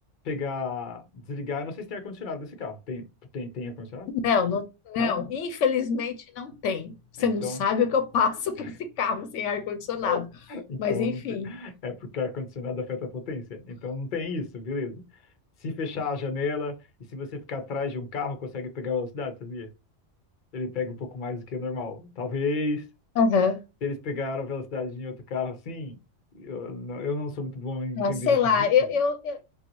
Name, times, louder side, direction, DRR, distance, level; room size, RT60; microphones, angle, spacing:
voice 1, 0.2-3.0 3.3-4.1 5.0-5.2 7.2-7.6 8.6-8.7 10.0-10.2 10.5-15.2 15.6-16.7 17.1-19.7 20.5-22.9 23.8-26.0 26.3-28.9, left 4 dB, 45° left, 0.9 m, -32 dB
voice 2, 4.2-10.3 10.8-11.5 23.2-23.6 27.9-29.4, left 6 dB, 80° left, 0.9 m, -25 dB
5.4 x 2.3 x 3.0 m
omnidirectional pair, 1.2 m